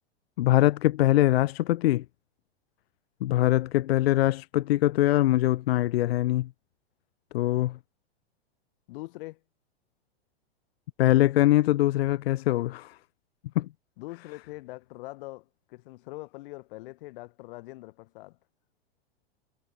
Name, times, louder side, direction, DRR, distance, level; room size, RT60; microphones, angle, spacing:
voice 1, 0.4-2.0 3.2-6.5 7.3-7.8 11.0-12.9 13.6-13.7, left 15 dB, 75° left, 0.5 m, -23 dB
voice 2, 8.9-9.4 14.0-18.4, left 21 dB, 55° left, 4.5 m, -43 dB
hypercardioid pair, 110°, 31 cm